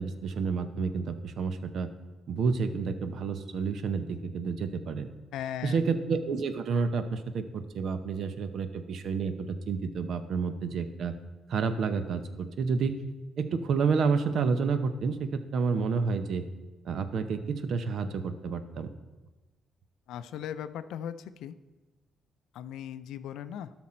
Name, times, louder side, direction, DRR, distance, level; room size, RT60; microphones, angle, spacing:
voice 1, 0.0-1.9 2.3-5.1 5.6-11.1 11.5-13.0 13.4-16.4 16.9-18.9, right 5 dB, 65° right, 10 dB, 0.8 m, -30 dB
voice 2, 5.3-5.8 20.1-21.5 22.5-23.7, left 10 dB, 85° left, 12 dB, 0.4 m, -38 dB
12.5 x 6.1 x 4.4 m, 1.2 s
cardioid pair, 90°, 0 cm